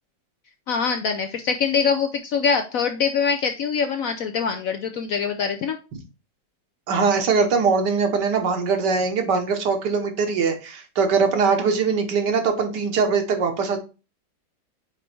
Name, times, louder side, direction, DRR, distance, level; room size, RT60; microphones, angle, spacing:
voice 1, 0.7-5.8, left 6 dB, 70° left, 6 dB, 0.8 m, -23 dB
voice 2, 6.9-13.8, right 5 dB, 70° right, 5 dB, 1.6 m, -21 dB
5.2 x 4.7 x 4.3 m, 0.31 s
omnidirectional pair, 1.9 m